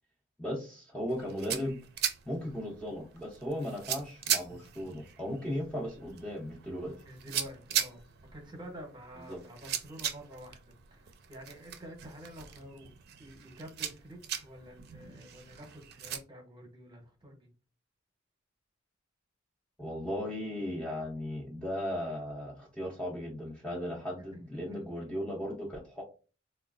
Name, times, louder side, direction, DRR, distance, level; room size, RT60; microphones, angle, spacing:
voice 1, 0.4-1.8 2.3-7.0 9.3-9.4 19.8-26.0, equal, 5° left, -3 dB, 0.5 m, -36 dB
sound 1, 1.1-16.2, right 9 dB, 50° right, 0.4 m, -39 dB
voice 2, 7.0-8.0 8.3-10.6 10.9-12.9 13.2-17.5 24.3-24.4 24.7-25.0, equal, 25° right, 3 dB, 0.8 m, -48 dB
3.8 x 2.2 x 2.4 m, 0.35 s
head